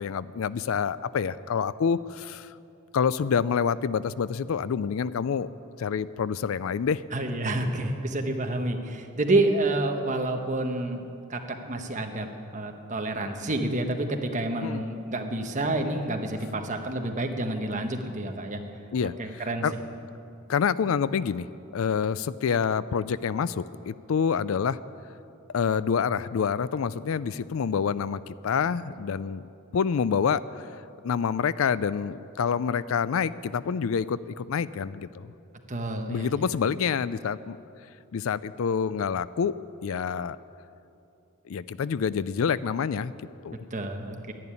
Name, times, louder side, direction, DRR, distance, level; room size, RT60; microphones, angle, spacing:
voice 1, 0.0-2.5 2.9-5.5 5.8-7.0 14.6-14.8 18.9-19.1 19.6-19.7 20.5-21.5 21.7-24.8 25.5-29.4 29.7-30.7 31.0-35.3 36.1-37.6 38.1-39.5 39.8-40.4 41.5-43.6, left 6 dB, 65° left, 17 dB, 0.4 m, -27 dB
voice 2, 7.1-11.0 11.3-12.3 12.5-18.6 19.2-19.6 35.7-36.3 43.7-44.3, right 2 dB, 35° right, 4 dB, 1.2 m, -28 dB
12.0 x 11.0 x 9.7 m, 2.7 s
head